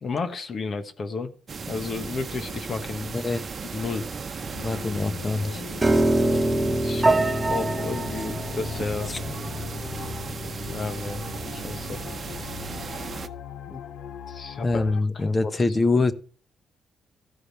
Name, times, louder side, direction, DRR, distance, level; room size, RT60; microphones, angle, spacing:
voice 1, 0.0-1.3 1.7-3.2 3.6-4.1 6.4-6.5 6.8-9.1 10.7-11.2 11.5-12.0 13.7-13.8 14.3-14.8 15.1-15.5, left 4 dB, 50° left, 1.2 m, -32 dB
sound 1, 1.5-13.3, right 5 dB, 45° right, 0.9 m, -36 dB
voice 2, 3.1-3.5 4.6-5.6 9.1-9.2 14.6-16.1, left 3 dB, 30° left, 1.1 m, -24 dB
sound 2, 4.5-15.0, left 9 dB, 80° left, 0.6 m, -40 dB
Piano, 5.8-12.0, right 2 dB, 20° right, 1.2 m, -26 dB
14.5 x 4.9 x 5.8 m
supercardioid pair, 60°, 0 cm